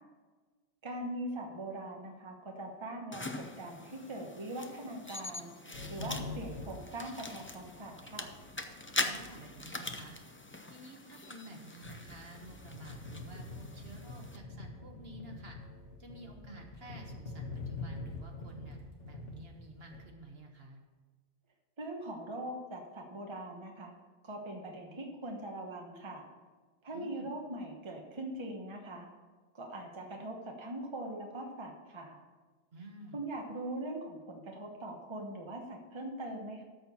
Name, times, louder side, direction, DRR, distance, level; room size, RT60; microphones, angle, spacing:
voice 1, 0.8-8.3 21.8-23.9 24.2-26.3 26.8-29.1 29.5-32.2 33.1-36.6, right 1 dB, 25° right, 1 dB, 1.1 m, -41 dB
sound 1, 3.1-14.4, left 2 dB, 15° left, 0.4 m, -42 dB
sound 2, 5.7-9.5 9.7-10.0 10.2-10.4 10.8-10.9 11.1-11.2 11.7-20.0, left 3 dB, 80° left, 1.8 m, -45 dB
voice 2, 6.0-6.5 9.0-10.1 10.7-15.6 16.0-20.8 26.9-27.3 32.7-33.2, right 2 dB, 55° right, 2 dB, 1.6 m, -51 dB
13.0 x 4.5 x 6.9 m, 1.4 s
omnidirectional pair, 1.2 m